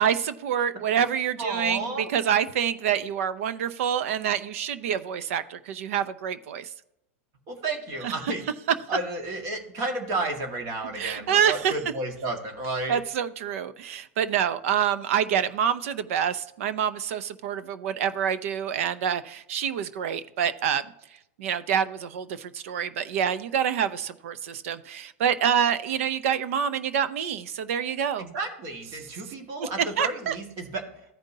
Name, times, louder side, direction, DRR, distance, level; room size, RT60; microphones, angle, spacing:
voice 1, 0.0-6.7 8.0-8.3 11.0-11.7 12.9-20.8 21.4-28.3 29.6-29.7 30.0-30.4, right 8 dB, 70° right, 13 dB, 0.7 m, -27 dB
voice 2, 1.4-2.1 7.5-8.4 8.9-13.0 28.2-30.8, right 2 dB, 45° right, 3 dB, 1.8 m, -32 dB
14.0 x 5.2 x 2.7 m, 0.82 s
hypercardioid pair, 120°, 8 cm